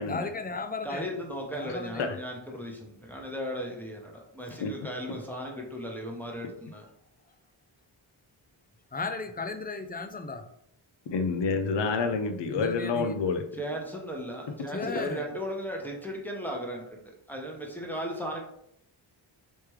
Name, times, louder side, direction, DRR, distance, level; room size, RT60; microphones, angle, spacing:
voice 1, 0.1-1.1 1.5-2.1 8.9-10.5 12.5-13.2 14.7-15.3, left 3 dB, 20° left, 7 dB, 0.4 m, -35 dB
voice 2, 0.8-6.8 13.6-18.4, equal, 5° left, -1 dB, 0.9 m, -36 dB
voice 3, 11.1-13.4, left 4 dB, 60° left, 6 dB, 0.6 m, -28 dB
3.3 x 3.1 x 3.1 m, 0.74 s
cardioid pair, 60°, 48 cm